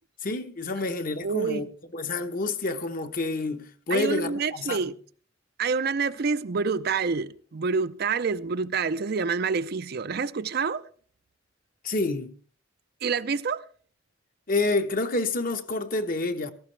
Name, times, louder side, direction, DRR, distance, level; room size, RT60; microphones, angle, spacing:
voice 1, 0.2-1.7 1.9-4.8 11.8-12.3 14.5-16.5, left 2 dB, 45° left, 1.0 m, -28 dB
voice 2, 1.2-1.7 3.9-4.9 5.6-10.8 13.0-13.6, right 5 dB, 50° right, 0.5 m, -27 dB
17.0 x 14.5 x 3.2 m
head